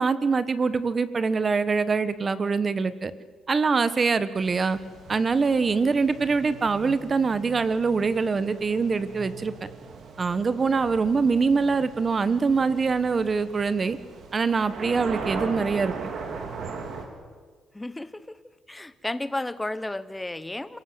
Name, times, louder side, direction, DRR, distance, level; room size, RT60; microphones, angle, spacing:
voice 1, 0.0-3.1 3.5-4.8 5.1-9.5 10.2-14.0 14.3-16.1, right 4 dB, 35° right, 14 dB, 1.2 m, -24 dB
sound 1, 4.4-17.1, right 4 dB, 65° right, 3.9 m, -39 dB
voice 2, 17.7-18.4 18.7-20.8, left 1 dB, 10° left, 15 dB, 1.1 m, -33 dB
27.5 x 17.5 x 8.0 m, 1.5 s
cardioid pair, 105°, 0 cm